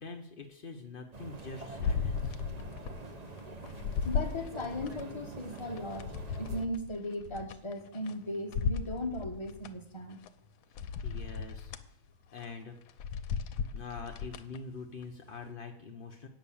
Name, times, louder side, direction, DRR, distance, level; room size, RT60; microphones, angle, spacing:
voice 1, 0.0-2.4 10.7-11.7 12.3-12.8 13.7-16.3, left 4 dB, 60° left, 2 dB, 0.5 m, -44 dB
sound 1, 1.1-6.7, right 2 dB, 40° right, 0.5 m, -45 dB
sound 2, 1.8-3.0 3.4-5.0 5.6-8.1 8.5-9.7 10.2-10.3 10.8-11.9 12.3-12.5 12.9-14.6 15.0-15.1, left 6 dB, 80° left, 1.5 m, -35 dB
voice 2, 4.0-6.1 6.4-10.2, left 1 dB, 15° left, 2 dB, 1.2 m, -37 dB
8.9 x 6.6 x 8.5 m, 0.71 s
omnidirectional pair, 2.2 m